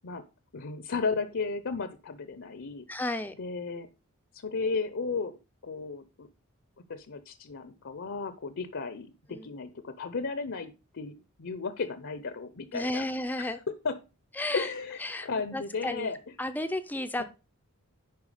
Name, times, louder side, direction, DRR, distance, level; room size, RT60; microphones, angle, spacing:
voice 1, 0.5-2.8 3.4-3.9 4.3-5.4 5.6-6.3 6.9-13.1 13.4-14.0 14.5-16.2 17.2-17.3, left 4 dB, 60° left, 11 dB, 0.7 m, -34 dB
voice 2, 2.9-3.3 9.3-9.5 12.7-13.6 14.4-14.7 15.0-16.1 16.4-17.2, left 1 dB, 10° left, 10 dB, 0.5 m, -33 dB
10.5 x 4.5 x 4.9 m, 0.31 s
head